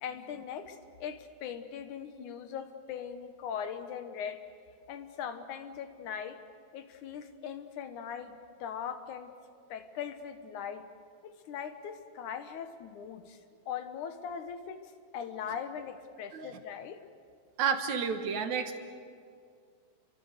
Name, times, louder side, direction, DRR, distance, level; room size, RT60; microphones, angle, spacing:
voice 1, 0.0-4.4 4.9-6.4 6.7-8.3 8.6-9.3 9.7-10.8 11.2-13.4 13.7-17.0, left 8 dB, 80° left, 8 dB, 2.7 m, -40 dB
voice 2, 17.6-18.8, right 6 dB, 70° right, 6 dB, 2.7 m, -31 dB
29.0 x 23.5 x 6.7 m, 2.2 s
omnidirectional pair, 3.5 m